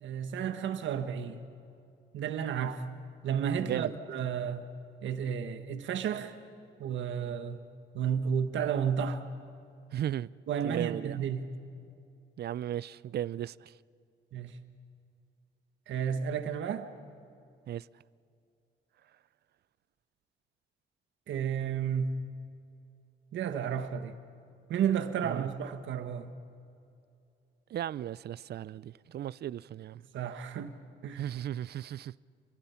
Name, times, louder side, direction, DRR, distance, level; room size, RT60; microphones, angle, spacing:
voice 1, 0.0-1.4 2.1-2.8 3.2-4.6 5.0-6.3 6.8-7.6 7.9-9.2 10.5-11.5 14.3-14.5 15.9-16.9 21.3-22.1 23.3-24.1 24.7-26.3 30.1-30.7 31.0-31.3, right 8 dB, 70° right, 1.5 m, -32 dB
voice 2, 3.6-3.9 9.9-10.3 10.6-11.2 12.4-13.5 17.7-17.8 25.2-25.5 27.7-30.0 31.2-32.1, right 11 dB, 55° right, 0.5 m, -35 dB
29.5 x 23.5 x 5.8 m
cardioid pair, 90°, 20 cm